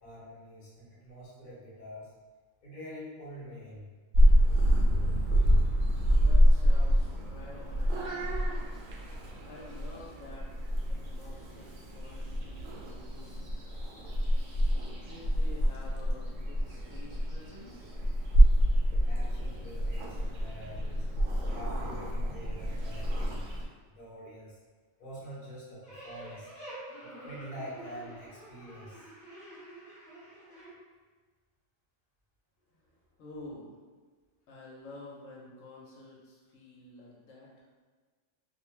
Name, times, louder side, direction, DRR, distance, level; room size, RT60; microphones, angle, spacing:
voice 1, 0.0-2.1 2.6-3.9 19.0-21.1 21.5-23.4 23.9-24.6 25.0-26.5 27.0-29.1, equal, 40° left, -8 dB, 0.9 m, -46 dB
Purr / Meow, 4.1-23.6, equal, 75° right, 0.9 m, -27 dB
voice 2, 6.1-8.3 9.4-10.5 10.9-13.7 15.0-17.9 33.2-33.8 34.5-37.5, left 2 dB, 80° left, -4 dB, 1.0 m, -49 dB
sound 1, 25.8-30.7, right 1 dB, 5° left, 0.8 m, -47 dB
2.3 x 2.2 x 3.1 m, 1.4 s
omnidirectional pair, 1.3 m